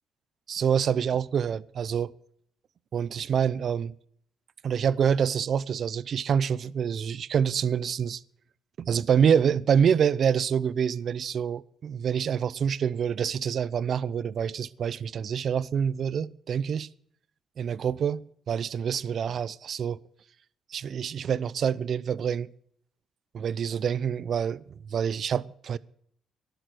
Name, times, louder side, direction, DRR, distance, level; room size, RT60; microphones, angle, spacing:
voice 1, 0.5-2.1 2.9-3.9 4.6-8.2 8.8-16.9 17.6-20.0 20.7-22.5 23.3-25.8, right 7 dB, 60° right, 0.6 m, -26 dB
13.0 x 11.0 x 5.9 m
cardioid pair, 90°, 0 cm